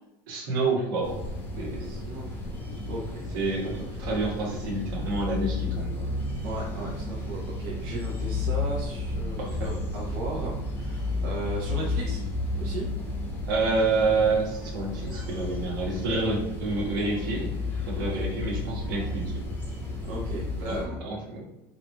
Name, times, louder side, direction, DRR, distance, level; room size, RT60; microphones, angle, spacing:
voice 1, 0.3-1.2 1.6-1.9 3.3-6.1 9.4-9.7 13.5-17.5 17.9-19.4 20.7-20.8 21.0-21.4, right 3 dB, 90° right, -2 dB, 1.3 m, -28 dB
sound 1, 1.0-20.9, left 2 dB, 20° left, 0.8 m, -32 dB
voice 2, 1.8-3.3 3.6-4.0 6.4-12.2 12.6-12.9 18.0-18.3 20.1-21.0, right 2 dB, 65° right, -4 dB, 0.8 m, -36 dB
3.6 x 3.1 x 2.3 m, 0.98 s
cardioid pair, 155°, 11 cm